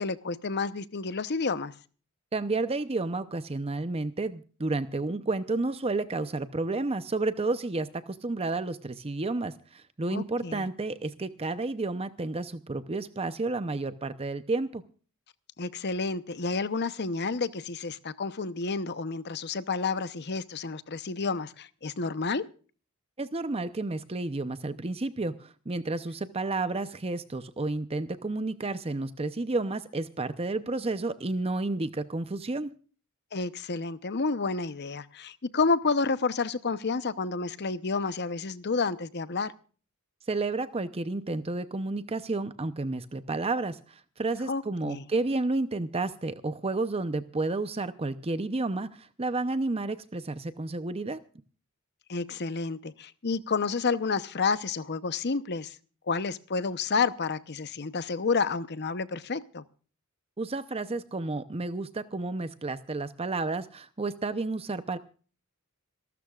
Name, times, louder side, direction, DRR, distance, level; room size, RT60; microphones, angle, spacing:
voice 1, 0.0-1.7 10.1-10.7 15.6-22.4 33.3-39.5 44.5-45.0 52.1-55.8 56.1-59.6, left 4 dB, 50° left, 0.8 m, -30 dB
voice 2, 2.3-14.8 23.2-32.7 40.3-51.2 60.4-65.0, right 2 dB, 25° right, 0.7 m, -31 dB
26.5 x 13.0 x 2.4 m
head